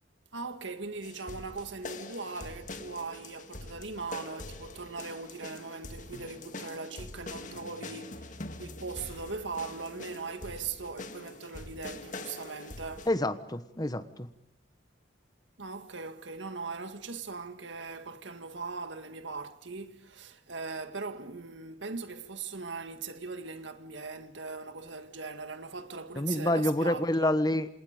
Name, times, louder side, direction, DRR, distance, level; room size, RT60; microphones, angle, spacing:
voice 1, 0.3-13.1 15.6-27.4, right 4 dB, 75° right, 1.9 m, -40 dB
sound 1, 1.0-13.1, left 2 dB, 40° left, 1.9 m, -44 dB
voice 2, 13.1-14.3 26.2-27.7, left 1 dB, 20° left, 1.3 m, -28 dB
28.0 x 27.5 x 5.1 m
head